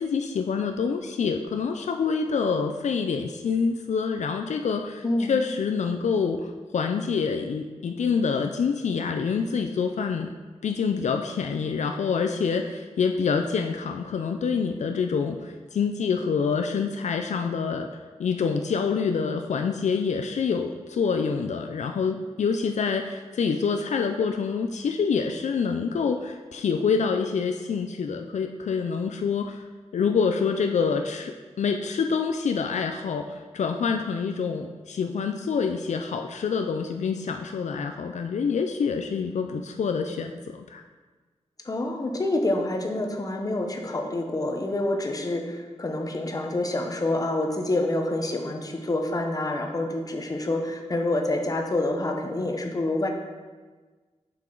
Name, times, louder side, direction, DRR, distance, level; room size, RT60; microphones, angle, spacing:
voice 1, 0.0-10.3 10.6-29.6 29.9-40.8, left 5 dB, 75° left, 5 dB, 0.4 m, -26 dB
voice 2, 5.0-5.3 41.6-53.1, left 2 dB, 30° left, 2 dB, 0.8 m, -27 dB
7.4 x 5.9 x 3.8 m, 1.4 s
wide cardioid pair, 150°, 12 cm